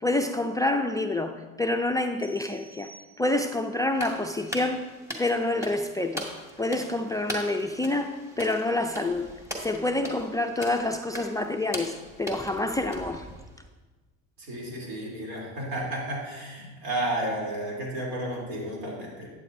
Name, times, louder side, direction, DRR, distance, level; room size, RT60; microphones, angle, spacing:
voice 1, 0.0-2.9 3.2-4.8 5.2-6.3 6.6-9.3 9.6-13.3, left 2 dB, 10° left, 7 dB, 0.3 m, -27 dB
sound 1, 2.2-3.7, right 3 dB, 25° right, 3.0 m, -52 dB
sound 2, 3.9-13.7, equal, 10° right, 1.8 m, -40 dB
voice 2, 14.4-19.3, right 1 dB, 85° right, -3 dB, 3.2 m, -32 dB
12.0 x 8.5 x 2.6 m, 1.3 s
supercardioid pair, 95°, 36 cm